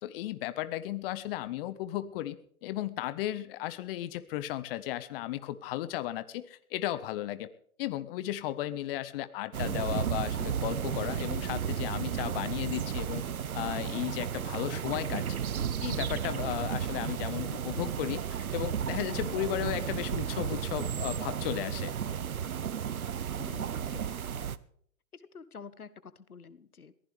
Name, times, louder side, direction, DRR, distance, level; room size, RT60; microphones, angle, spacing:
voice 1, 0.0-2.4 2.6-7.5 7.8-13.2 13.5-15.4 15.8-21.9, left 14 dB, 40° left, 14 dB, 1.3 m, -35 dB
sound 1, 9.5-24.6, right 8 dB, 75° right, 1.1 m, -33 dB
voice 2, 23.3-24.0 25.1-27.0, left 5 dB, 85° left, 16 dB, 1.3 m, -49 dB
22.0 x 15.5 x 3.4 m, 0.63 s
figure-of-eight pair, 120°, 43 cm